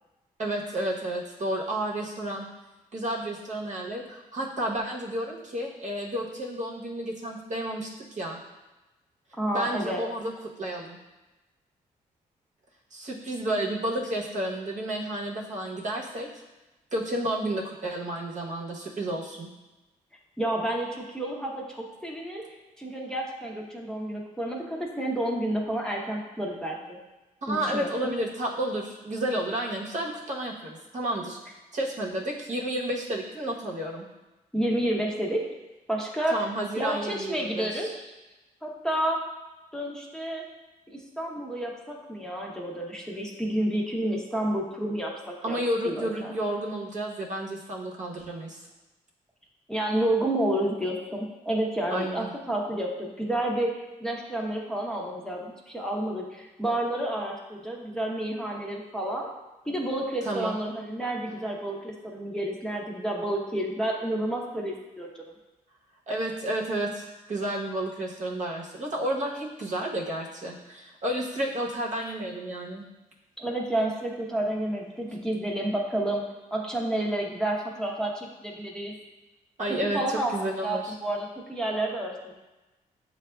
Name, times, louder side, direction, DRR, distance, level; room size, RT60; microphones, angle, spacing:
voice 1, 0.4-2.5 2.9-8.4 9.5-10.3 10.6-11.0 12.9-16.3 16.9-19.5 27.4-34.0 36.3-37.9 45.4-48.6 51.9-52.3 60.2-60.6 66.1-72.9 79.6-80.0 80.3-80.9, right 1 dB, 50° right, -2 dB, 1.0 m, -31 dB
voice 2, 9.4-10.0 20.4-22.4 22.8-27.0 27.5-28.1 34.5-35.4 35.9-36.4 36.8-38.0 38.6-39.2 39.7-40.5 40.9-45.6 45.9-46.3 49.7-59.3 59.7-65.3 73.4-78.9 79.7-82.3, right 1 dB, 5° left, -2 dB, 0.9 m, -30 dB
7.3 x 2.5 x 2.3 m, 1.1 s
supercardioid pair, 55°, 16 cm